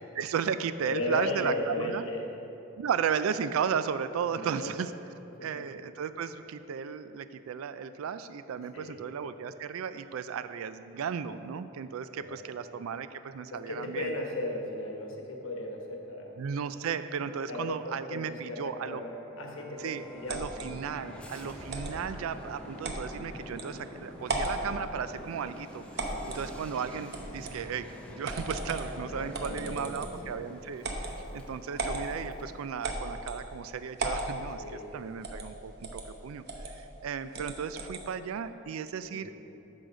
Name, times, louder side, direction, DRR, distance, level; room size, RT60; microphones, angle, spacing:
voice 1, 0.1-2.1 2.8-4.9 5.4-14.1 16.4-19.0 19.8-39.3, right 7 dB, 75° right, 12 dB, 0.3 m, -35 dB
voice 2, 0.9-2.3 4.3-4.7 5.5-5.6 8.7-9.0 12.2-12.5 13.5-16.4 17.5-20.5 26.1-26.5 29.1-30.4 34.6-34.9 39.1-39.4, left 1 dB, 70° left, 1 dB, 1.1 m, -36 dB
sound 1, 18.8-32.6, equal, 5° left, 0.6 m, -47 dB
sound 2, 20.3-20.7 21.7-21.9 22.8-23.0 23.6-23.7 24.2-24.6 26.0-26.4 27.1-27.6 28.2-28.9 29.3-30.2 30.8-31.1 31.8-32.0 32.8-33.4 34.0-34.3 35.2-35.5 35.8-36.0 36.5-36.7 37.3-38.0, right 2 dB, 50° right, 0.8 m, -35 dB
9.0 x 3.9 x 6.2 m, 2.9 s
head